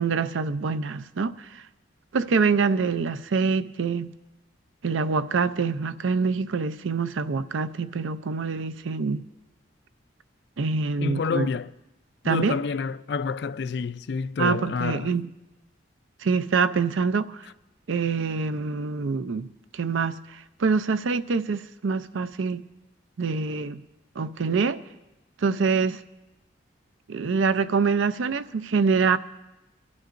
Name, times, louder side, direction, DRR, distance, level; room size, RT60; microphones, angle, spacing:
voice 1, 0.0-1.6 2.1-4.1 4.8-9.3 10.6-11.5 12.2-12.6 14.4-15.3 16.2-17.5 17.9-19.5 19.7-22.7 23.2-23.8 24.2-24.8 25.4-26.0 27.1-29.2, right 5 dB, 85° right, 0.5 m, -25 dB
voice 2, 11.0-11.7 12.2-15.1, left 5 dB, 60° left, 0.3 m, -28 dB
23.5 x 12.0 x 2.6 m
head